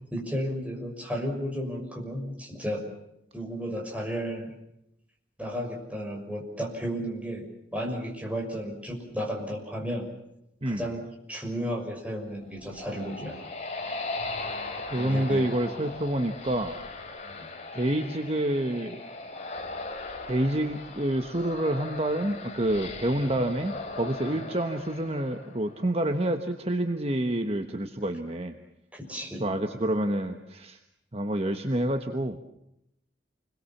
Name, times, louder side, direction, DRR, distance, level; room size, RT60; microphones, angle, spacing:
voice 1, 0.1-2.8 3.3-4.5 5.4-7.4 7.7-10.1 10.7-11.0 11.3-13.3 15.0-15.8 17.2-17.5 23.3-23.4 24.3-24.5 28.9-29.4, equal, 5° right, 0 dB, 6.3 m, -33 dB
sound 1, 12.4-25.9, left 3 dB, 35° left, 3.3 m, -39 dB
voice 2, 14.9-16.8 17.7-19.0 20.3-28.6 29.4-30.8 31.1-32.4, right 1 dB, 35° right, 6 dB, 1.3 m, -28 dB
29.0 x 21.5 x 7.3 m, 0.82 s
head